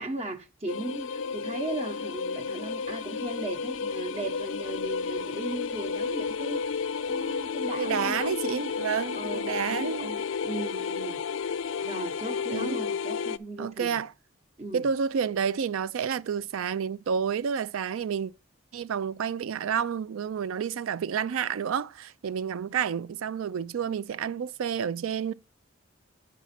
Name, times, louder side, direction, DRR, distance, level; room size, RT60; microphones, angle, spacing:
voice 1, 0.0-6.8 7.1-8.6 9.1-11.2 11.8-14.0 14.6-14.9, right 2 dB, 30° right, 0.8 m, -37 dB
sound 1, 0.7-13.4, left 5 dB, 65° left, 0.4 m, -32 dB
voice 2, 7.8-10.1 12.5-12.8 13.6-14.1 14.7-18.3 18.7-25.3, right 7 dB, 75° right, 0.4 m, -30 dB
8.3 x 4.2 x 5.7 m
head